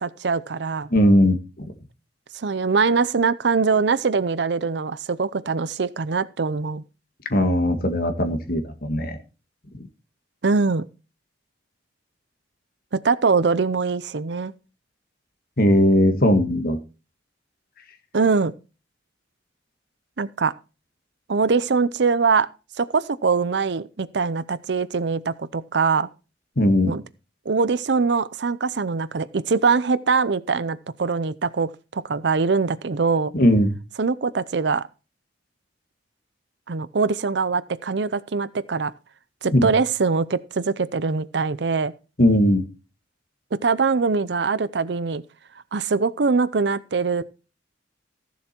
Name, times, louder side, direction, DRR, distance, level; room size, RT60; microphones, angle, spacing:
voice 1, 0.0-0.9 2.3-6.8 10.4-10.9 12.9-14.5 18.1-18.5 20.2-20.5 21.3-22.5 22.8-26.1 26.9-27.0 27.5-33.3 34.0-34.9 36.7-38.9 39.4-41.9 43.5-45.2 45.7-47.3, right 4 dB, 65° right, 0.6 m, -22 dB
voice 2, 0.9-1.7 7.3-9.2 15.6-16.8 26.6-26.9 33.3-33.7 39.5-39.7 42.2-42.6, left 1 dB, 55° left, 1.8 m, -19 dB
15.0 x 7.1 x 4.4 m
head